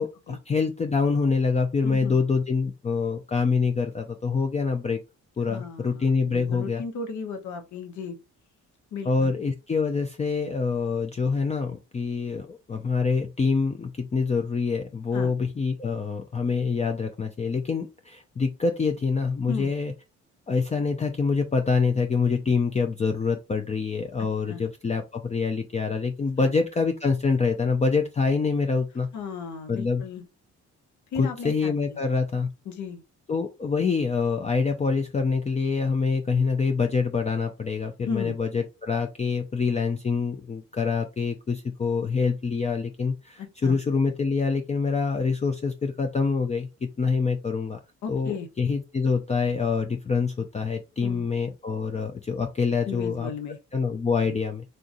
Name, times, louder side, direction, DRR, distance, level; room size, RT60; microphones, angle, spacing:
voice 1, 0.0-5.0 5.4-6.8 9.0-19.9 20.5-29.1 29.7-30.0 31.2-32.5 33.3-47.8 48.1-53.3 53.7-54.6, left 4 dB, 25° left, 0.4 m, -26 dB
voice 2, 1.8-2.2 5.5-8.2 8.9-9.3 15.1-15.3 19.5-19.7 24.5-24.6 26.4-26.5 29.1-30.2 31.1-32.0 32.7-33.0 38.0-38.4 43.4-43.8 48.0-48.5 51.0-51.2 52.8-53.6 54.3-54.4, left 5 dB, 70° left, 0.9 m, -35 dB
3.7 x 2.6 x 2.5 m
cardioid pair, 90°, 30 cm